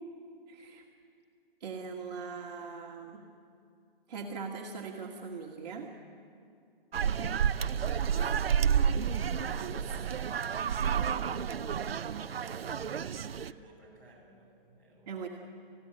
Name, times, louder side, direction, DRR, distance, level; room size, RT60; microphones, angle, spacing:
voice 1, 0.5-0.9 1.6-3.3 4.1-5.9 9.6-10.1 15.1-15.3, right 5 dB, 45° right, -1 dB, 2.2 m, -41 dB
sound 1, 6.9-13.5, right 7 dB, 80° right, 0.8 m, -30 dB
voice 2, 7.3-9.0 13.1-15.3, right 1 dB, 5° left, -5 dB, 6.2 m, -58 dB
30.0 x 16.0 x 8.9 m, 2.5 s
hypercardioid pair, 160°, 29 cm